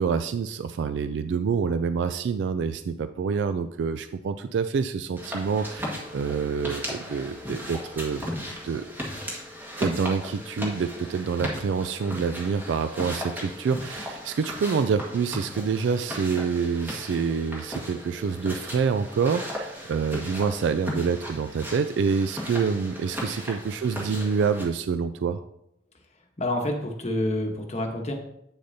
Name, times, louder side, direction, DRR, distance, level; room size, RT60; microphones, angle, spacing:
voice 1, 0.0-8.2 8.6-8.8 9.8-25.4, right 6 dB, 75° right, 11 dB, 0.3 m, -27 dB
sound 1, 5.2-24.6, equal, 10° right, 1.5 m, -36 dB
voice 2, 26.4-28.1, left 1 dB, 40° left, 3 dB, 1.0 m, -28 dB
8.1 x 6.5 x 2.7 m, 0.78 s
head